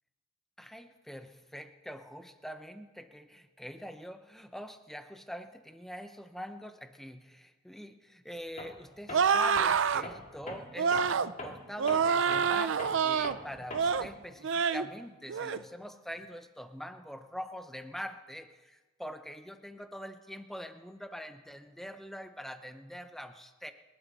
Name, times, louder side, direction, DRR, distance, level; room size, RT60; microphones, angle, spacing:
voice 1, 0.6-23.7, equal, ahead, 8 dB, 0.7 m, -44 dB
Tools, 8.6-8.8 9.1-14.1, left 1 dB, 35° left, 2.1 m, -43 dB
sound 1, 9.1-10.0 10.8-11.3 11.8-13.4 13.7-14.1 14.4-14.9 15.3-15.6, right 6 dB, 65° right, 0.5 m, -27 dB
29.5 x 12.0 x 4.1 m, 1.2 s
head